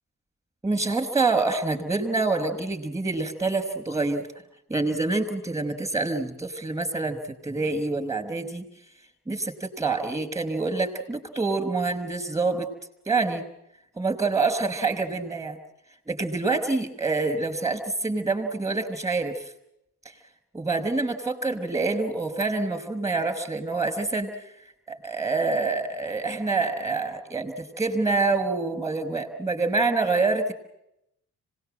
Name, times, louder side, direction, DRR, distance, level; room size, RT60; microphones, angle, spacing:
voice 1, 0.6-4.2 4.7-8.7 9.3-12.7 13.1-13.4 14.0-15.6 16.1-19.5 20.5-24.4 24.9-30.5, right 3 dB, 10° right, 8 dB, 5.7 m, -26 dB
25.5 x 20.0 x 7.8 m, 0.81 s
supercardioid pair, 55°, 38 cm